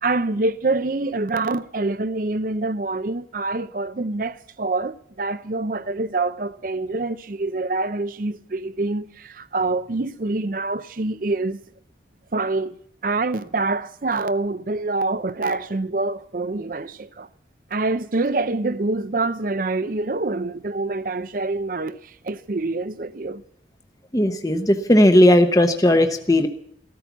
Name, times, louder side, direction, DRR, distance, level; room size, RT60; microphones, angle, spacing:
voice 1, 0.0-11.6 12.3-12.8 13.0-17.3 17.7-23.4, right 3 dB, 50° right, 0.6 m, -26 dB
voice 2, 24.1-26.5, left 1 dB, 20° left, 0.9 m, -16 dB
15.5 x 13.5 x 7.1 m
head